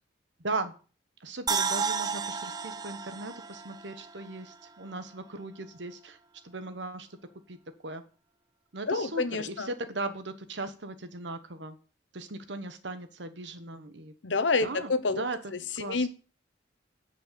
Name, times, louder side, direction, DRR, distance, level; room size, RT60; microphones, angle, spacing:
voice 1, 1.2-6.2 6.4-7.1 7.5-7.6 7.8-8.0 8.7-11.8 12.1-14.1 14.6-15.4 15.8-16.1, right 2 dB, 75° right, 9 dB, 1.2 m, -38 dB
sound 1, 1.5-4.7 5.0-5.1, right 5 dB, 20° right, 0.5 m, -32 dB
voice 2, 8.9-9.7 14.2-15.3 15.5-16.1, left 3 dB, 80° left, 12 dB, 0.9 m, -28 dB
9.3 x 5.4 x 6.9 m, 0.37 s
head